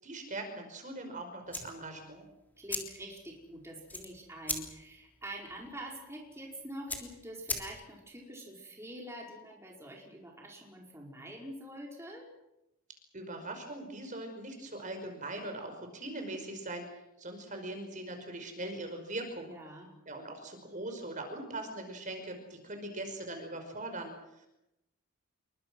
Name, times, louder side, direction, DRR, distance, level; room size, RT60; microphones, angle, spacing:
voice 1, 0.0-2.3 13.1-16.9 17.2-19.5 20.1-24.5, right 2 dB, 35° right, 5 dB, 5.3 m, -41 dB
sound 1, 1.4-8.1, left 2 dB, 10° left, 3.3 m, -41 dB
voice 2, 2.6-12.3 19.4-19.9, right 1 dB, 10° right, -1 dB, 4.9 m, -45 dB
28.5 x 23.5 x 6.3 m, 0.89 s
head